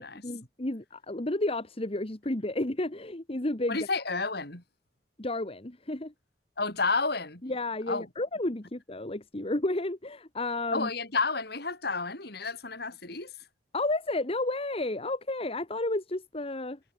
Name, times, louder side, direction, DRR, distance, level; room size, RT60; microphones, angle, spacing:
voice 1, 0.0-3.8 5.2-6.1 7.4-10.9 13.7-16.8, left 2 dB, 35° left, 1.6 m, -32 dB
voice 2, 3.7-4.6 6.6-7.4 7.9-8.1 10.7-13.3, left 3 dB, 60° left, 6.3 m, -31 dB
head